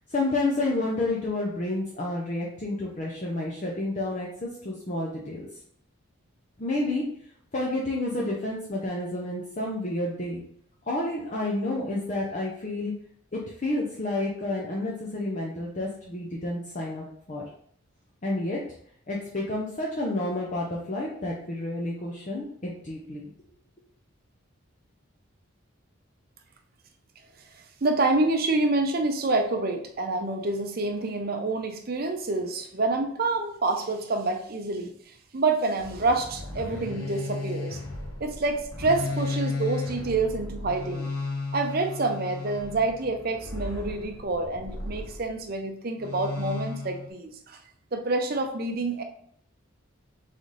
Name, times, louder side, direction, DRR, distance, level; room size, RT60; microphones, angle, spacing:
voice 1, 0.1-5.4 6.6-7.0 7.5-10.4 10.9-12.9 13.3-17.4 18.2-18.6 19.1-23.2, left 2 dB, 35° left, -3 dB, 0.6 m, -30 dB
voice 2, 27.5-37.8 38.2-41.1 41.5-47.6 47.9-49.0, right 3 dB, 45° right, 5 dB, 0.6 m, -27 dB
sound 1, 35.8-45.3 46.0-47.1, left 3 dB, 85° left, 1.3 m, -34 dB
4.0 x 3.9 x 3.2 m, 0.65 s
head